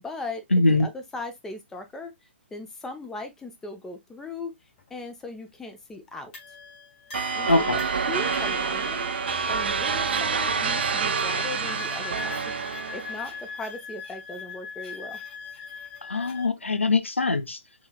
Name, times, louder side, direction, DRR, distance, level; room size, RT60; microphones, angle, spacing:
voice 1, 0.0-2.1 2.5-4.5 4.9-6.3 7.3-7.7 8.1-9.1 9.5-12.5 12.9-15.2, left 2 dB, 5° left, 0.6 m, -38 dB
voice 2, 0.5-0.9 7.5-7.8 16.1-17.6, left 2 dB, 80° left, 0.7 m, -22 dB
sound 1, 4.8-4.9 6.3-16.5, left 6 dB, 35° left, 2.4 m, -41 dB
sound 2, 7.1-13.4, right 5 dB, 60° right, 0.7 m, -27 dB
5.4 x 3.0 x 2.2 m
figure-of-eight pair, 125°, 7 cm